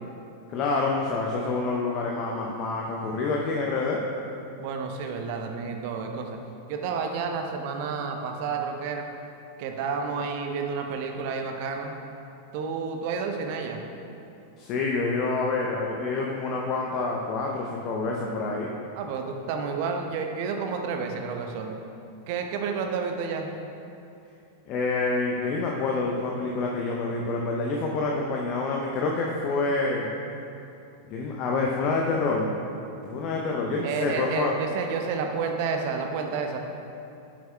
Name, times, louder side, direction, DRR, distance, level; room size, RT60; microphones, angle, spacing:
voice 1, 0.5-4.0 14.6-18.7 24.7-30.1 31.1-32.5 33.0-34.6, left 3 dB, 40° left, -1 dB, 0.6 m, -27 dB
voice 2, 4.6-6.4 6.7-9.1 9.6-11.9 12.5-13.8 19.0-21.7 22.3-23.5 33.3-33.4 33.8-36.6, right 5 dB, 45° right, 4 dB, 0.8 m, -30 dB
10.0 x 7.8 x 2.3 m, 2.7 s
figure-of-eight pair, 90°, 0 cm